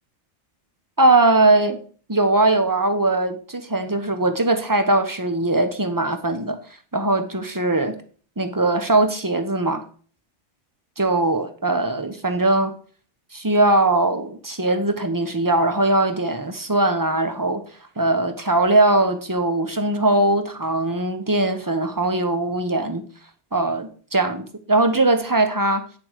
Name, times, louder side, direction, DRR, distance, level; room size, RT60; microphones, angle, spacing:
voice 1, 1.0-1.8 2.1-6.6 6.9-7.9 8.4-9.8 11.0-12.7 13.3-17.6 18.0-23.1 23.5-25.8, right 2 dB, 20° right, 0.9 m, -20 dB
8.5 x 7.1 x 4.9 m
omnidirectional pair, 1.3 m